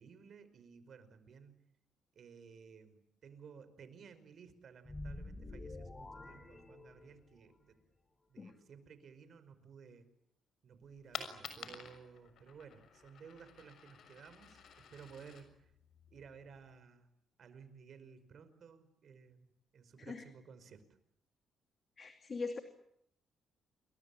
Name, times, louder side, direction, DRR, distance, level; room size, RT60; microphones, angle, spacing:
voice 1, 0.0-1.7 2.2-7.8 8.3-10.1 10.6-15.7 16.1-17.1 17.4-19.5 19.7-20.8, right 6 dB, 55° right, 12 dB, 5.2 m, -56 dB
sound 1, 4.8-7.4, left 2 dB, 25° left, 4.5 m, -48 dB
Coin (dropping), 10.8-16.8, left 7 dB, 65° left, 6.5 m, -51 dB
voice 2, 22.0-22.6, left 4 dB, 40° left, 6 dB, 2.8 m, -41 dB
29.0 x 22.5 x 8.7 m, 0.73 s
cardioid pair, 90°, 0 cm